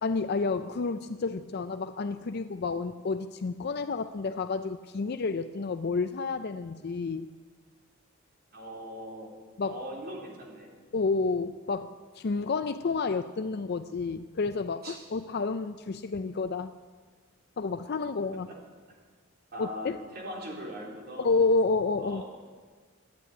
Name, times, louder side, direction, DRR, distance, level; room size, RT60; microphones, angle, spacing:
voice 1, 0.0-7.3 9.6-9.8 10.9-16.7 17.6-18.5 19.6-20.0 21.2-22.2, left 4 dB, 55° left, 10 dB, 0.5 m, -30 dB
voice 2, 8.5-9.3 9.6-10.7 14.8-15.0 18.5-18.6 19.5-21.3 22.0-22.2, equal, 55° right, -2 dB, 3.9 m, -40 dB
14.5 x 10.0 x 9.5 m, 1.5 s
head